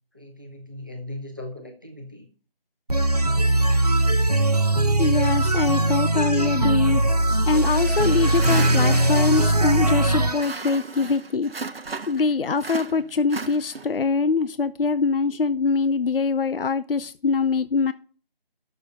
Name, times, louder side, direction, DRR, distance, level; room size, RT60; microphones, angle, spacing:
voice 1, 0.1-2.3 14.0-14.2, left 1 dB, 20° right, 3 dB, 0.8 m, -38 dB
sound 1, 2.9-10.4, right 1 dB, 40° right, 0.4 m, -20 dB
voice 2, 5.0-7.0 7.5-11.5 12.1-17.9, left 4 dB, 70° left, 14 dB, 0.5 m, -23 dB
sound 2, 7.5-12.3 12.6-14.1, right 4 dB, 75° right, 0.8 m, -35 dB
7.2 x 6.7 x 6.6 m, 0.40 s
figure-of-eight pair, 170°, 30 cm